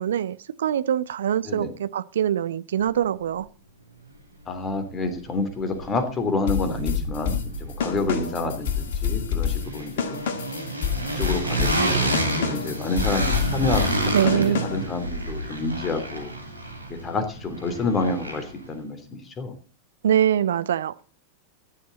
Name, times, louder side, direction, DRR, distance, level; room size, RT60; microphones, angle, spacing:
voice 1, 0.0-3.5 14.1-14.6 20.0-20.9, right 9 dB, 65° right, 0.7 m, -23 dB
voice 2, 4.5-10.2 11.2-16.3 16.9-19.5, left 3 dB, 20° left, 3.1 m, -28 dB
sound 1, 4.7-4.8 5.1-6.2 6.5-18.7, right 1 dB, 85° right, 2.7 m, -29 dB
sound 2, 6.5-15.0, left 8 dB, 60° left, 2.2 m, -28 dB
14.5 x 11.5 x 4.0 m
figure-of-eight pair, 90°, 0 cm